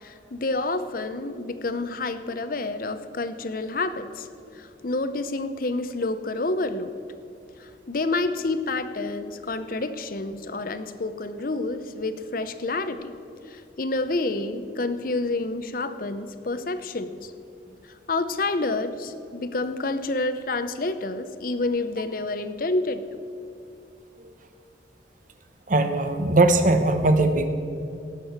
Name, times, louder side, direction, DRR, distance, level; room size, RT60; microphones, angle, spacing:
voice 1, 0.0-4.3 4.6-6.9 7.9-13.1 13.5-17.3 18.1-23.2, left 2 dB, 50° left, 11 dB, 0.7 m, -28 dB
voice 2, 25.7-27.5, right 2 dB, 45° right, 8 dB, 1.0 m, -20 dB
17.0 x 6.9 x 7.2 m, 2.6 s
head